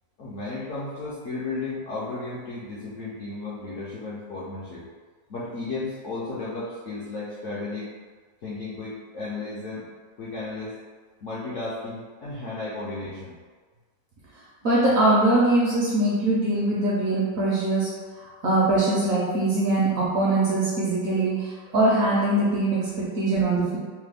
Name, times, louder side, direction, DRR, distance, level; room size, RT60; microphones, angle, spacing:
voice 1, 0.2-4.9 5.3-7.9 8.4-9.9 10.2-10.8 11.2-13.4, left 3 dB, 70° left, -9 dB, 0.7 m, -34 dB
voice 2, 14.6-17.9 18.2-21.5 21.7-23.8, right 2 dB, 65° right, -6 dB, 0.9 m, -22 dB
3.2 x 2.1 x 3.3 m, 1.5 s
omnidirectional pair, 1.9 m